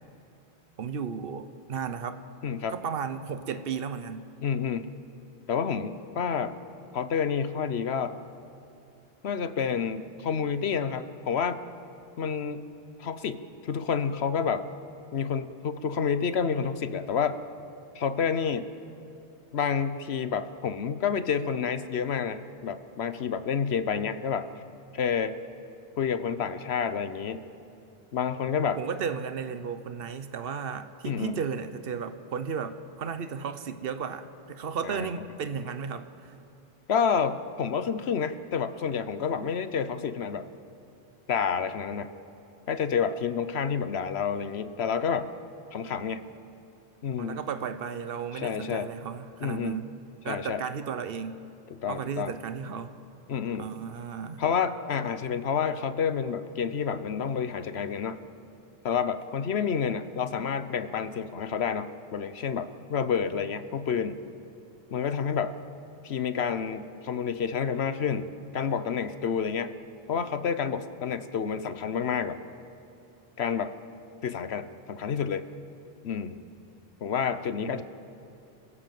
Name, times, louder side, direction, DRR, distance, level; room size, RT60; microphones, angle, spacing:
voice 1, 0.8-2.2 2.7-4.3 28.5-36.3 47.2-49.9 50.2-51.4 51.9-52.9 53.5-54.4 77.6-77.8, right 6 dB, 60° right, 10 dB, 1.1 m, -34 dB
voice 2, 2.4-2.8 4.4-4.9 5.5-6.6 6.9-8.2 9.2-11.6 12.2-12.6 13.0-14.7 15.1-17.4 17.9-18.7 19.5-24.5 24.9-25.4 26.0-27.5 28.1-28.8 31.1-31.4 34.8-35.1 36.9-40.5 41.3-42.1 42.7-45.3 45.7-46.3 47.0-47.4 48.3-48.9 49.4-49.9 50.3-50.6 51.7-52.3 53.3-53.7 54.4-58.2 58.8-64.2 64.9-65.6 66.0-69.7 70.1-72.4 73.4-73.7 74.2-75.5 76.0-76.4 77.0-77.8, left 6 dB, 75° left, 12 dB, 1.1 m, -29 dB
26.5 x 16.0 x 7.6 m, 2.6 s
omnidirectional pair, 1.1 m